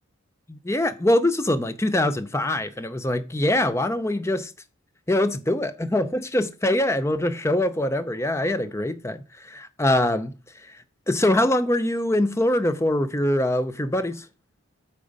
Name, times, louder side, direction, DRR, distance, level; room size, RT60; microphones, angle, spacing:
voice 1, 0.5-4.5 5.1-10.3 11.1-14.2, left 1 dB, 15° left, 0.5 m, -23 dB
8.7 x 4.5 x 5.2 m
head